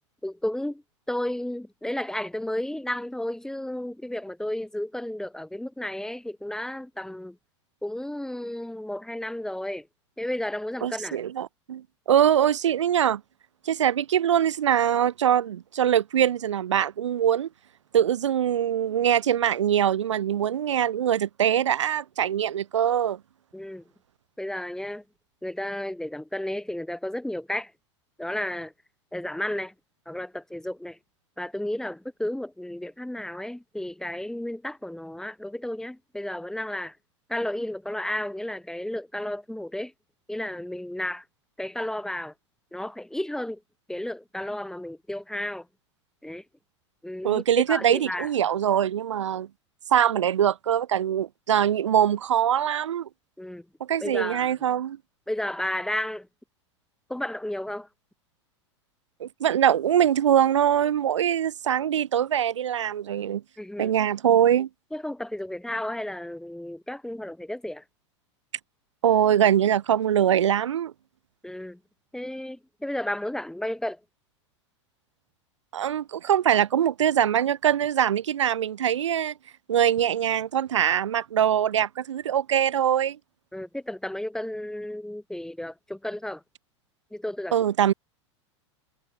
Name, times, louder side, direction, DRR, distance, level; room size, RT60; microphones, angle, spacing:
voice 1, 0.2-0.8 1.1-7.4 7.8-9.9 10.2-11.2 23.5-23.8 24.4-25.0 25.4-27.7 28.2-28.7 29.1-29.7 30.1-31.0 31.4-37.0 37.3-39.9 40.3-41.2 41.6-42.3 42.7-43.6 43.9-45.7 46.2-46.4 47.0-48.3 53.4-53.7 54.0-54.6 55.3-56.3 57.1-57.9 63.6-64.0 64.9-67.8 71.4-71.8 72.1-74.0 83.5-86.4 87.1-87.6, left 1 dB, 5° left, 2.8 m, -32 dB
voice 2, 10.8-13.2 13.7-17.5 17.9-23.2 47.2-49.5 49.9-53.1 53.9-55.0 59.2-63.4 63.8-64.7 69.0-70.9 75.7-79.3 79.7-83.2 87.5-87.9, right 10 dB, 75° right, 2.5 m, -23 dB
hypercardioid pair, 90°, 16 cm